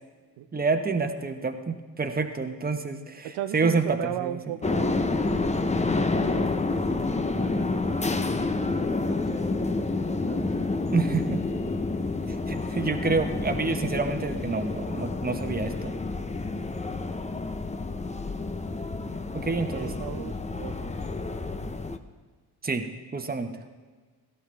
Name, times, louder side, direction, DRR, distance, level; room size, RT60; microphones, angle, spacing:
voice 1, 0.5-4.4 10.9-11.4 12.3-15.9 19.3-19.9 22.6-22.9 23.1-23.6, right 4 dB, 20° right, 6 dB, 1.3 m, -28 dB
voice 2, 3.2-5.4 6.0-9.4 10.3-10.7 19.7-20.9, right 12 dB, 90° right, 13 dB, 0.7 m, -38 dB
sound 1, 4.6-22.0, left 3 dB, 15° left, 0.8 m, -29 dB
17.5 x 12.5 x 3.5 m, 1.5 s
cardioid pair, 70°, 41 cm